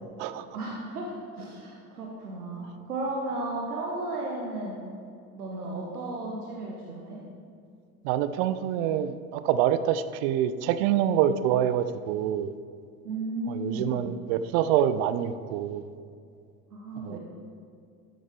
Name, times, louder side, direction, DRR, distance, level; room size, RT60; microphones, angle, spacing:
voice 1, 0.5-4.8 5.3-7.2 13.0-14.0 16.7-17.2, right 2 dB, 75° right, -1 dB, 1.1 m, -34 dB
voice 2, 8.0-12.5 13.5-15.9 17.0-17.2, right 10 dB, 45° right, 13 dB, 0.5 m, -26 dB
12.5 x 7.9 x 3.2 m, 2.3 s
figure-of-eight pair, 65°, 45 cm